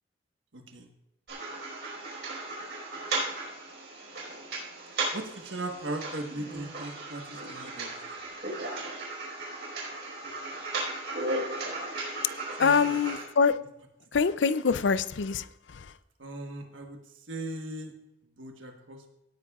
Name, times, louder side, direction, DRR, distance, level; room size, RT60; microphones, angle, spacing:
voice 1, 0.5-0.9 5.1-7.9 12.6-13.0 16.2-17.0 17.3-17.9 18.4-19.1, right 2 dB, 90° right, 3 dB, 1.3 m, -38 dB
sound 1, 1.3-13.2, right 2 dB, 60° right, 4.8 m, -36 dB
voice 2, 12.6-13.6 14.1-15.9, left 5 dB, 75° left, 15 dB, 0.5 m, -25 dB
17.5 x 10.0 x 2.4 m, 0.88 s
head